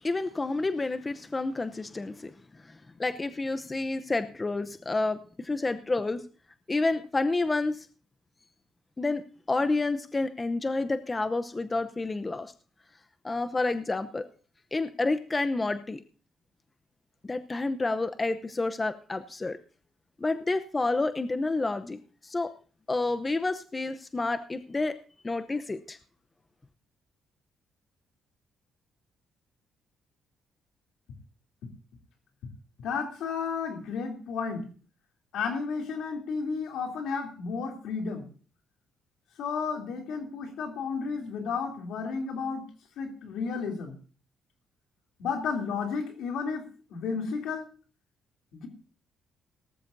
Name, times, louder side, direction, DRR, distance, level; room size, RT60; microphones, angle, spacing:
voice 1, 0.0-2.3 2.6-6.2 6.7-7.9 9.0-12.5 13.2-14.2 14.7-16.0 17.2-19.6 20.2-22.5 22.9-25.0 25.2-26.0, left 3 dB, 25° left, 9 dB, 0.8 m, -29 dB
voice 2, 32.8-34.7 35.3-38.3 39.4-42.6 43.0-44.0 45.2-47.7 48.5-48.7, left 5 dB, 80° left, 2 dB, 3.1 m, -32 dB
18.0 x 13.5 x 2.7 m, 0.38 s
cardioid pair, 90°, 0 cm